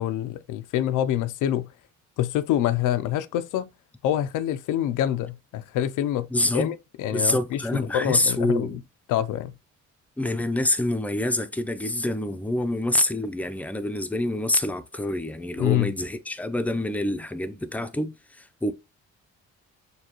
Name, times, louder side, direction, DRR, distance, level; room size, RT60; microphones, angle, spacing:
voice 1, 0.0-1.7 2.2-3.7 4.0-8.8 9.1-9.5 15.6-15.9, left 11 dB, 85° left, 0.5 m, -26 dB
voice 2, 6.3-6.7 7.1-8.8 10.2-18.7, left 1 dB, 5° left, 0.5 m, -26 dB
6.7 x 2.3 x 2.9 m
cardioid pair, 90°, 30 cm